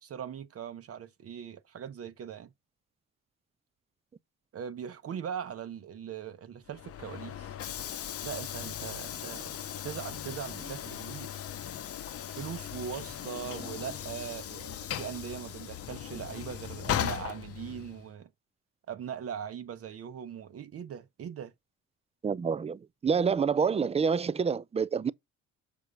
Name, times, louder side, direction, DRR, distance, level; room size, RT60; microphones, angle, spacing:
voice 1, 0.0-2.5 4.5-7.6 8.2-9.5 9.8-11.4 12.4-18.3 18.9-21.5, right 8 dB, 50° right, 1.0 m, -40 dB
Train / Sliding door, 6.7-18.1, left 10 dB, 50° left, 0.8 m, -38 dB
sound 1, 8.6-14.6, left 3 dB, ahead, 1.7 m, -54 dB
voice 2, 22.2-25.1, right 6 dB, 20° right, 0.4 m, -27 dB
6.9 x 4.7 x 5.0 m
cardioid pair, 120°, 31 cm